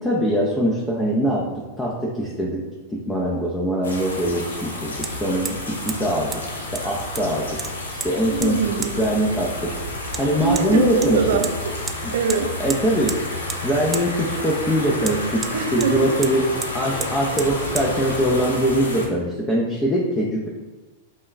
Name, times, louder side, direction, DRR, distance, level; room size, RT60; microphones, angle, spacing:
voice 1, 0.0-1.4 1.8-2.6 2.9-6.3 6.7-7.5 8.0-9.7 10.2-11.2 12.0-12.1 12.6-13.1 13.6-15.4 15.7-16.5 16.7-20.5, equal, 10° left, -4 dB, 0.7 m, -22 dB
Hammer, 3.1-3.2 5.0-5.1 5.4-5.6 5.9-6.0 6.3-6.4 6.7-7.3 7.6-8.1 8.4-8.5 8.8-8.9 10.1-10.2 10.6-10.7 11.0-11.5 11.9-12.0 12.3-12.4 12.7-13.2 13.5-13.6 13.9-14.1 15.0-15.9 16.2-16.3 16.6-16.7 17.0-17.1 17.4-17.5 17.8-17.9, right 5 dB, 20° right, 0.3 m, -31 dB
sound 1, 3.8-19.1, left 1 dB, 85° left, 0.8 m, -30 dB
voice 2, 8.3-9.0 10.4-12.6 15.5-16.1, right 6 dB, 70° right, 5 dB, 0.5 m, -23 dB
5.3 x 2.4 x 3.1 m, 1.2 s
hypercardioid pair, 105°, 0 cm